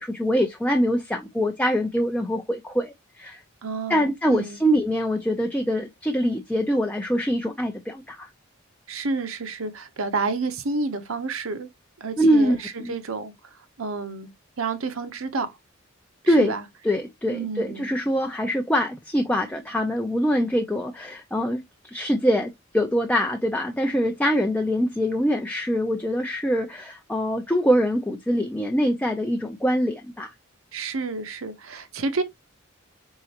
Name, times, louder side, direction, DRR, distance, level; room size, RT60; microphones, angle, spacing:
voice 1, 0.0-3.4 3.9-8.3 12.2-12.9 16.3-16.5 16.8-21.6 21.9-30.3, equal, 5° left, 0.5 m, -24 dB
voice 2, 3.6-4.6 8.9-11.7 12.0-13.3 13.8-14.3 14.6-15.6 16.2-16.6 17.3-17.9 30.7-32.2, right 3 dB, 85° right, 0.9 m, -30 dB
4.3 x 3.8 x 2.8 m
head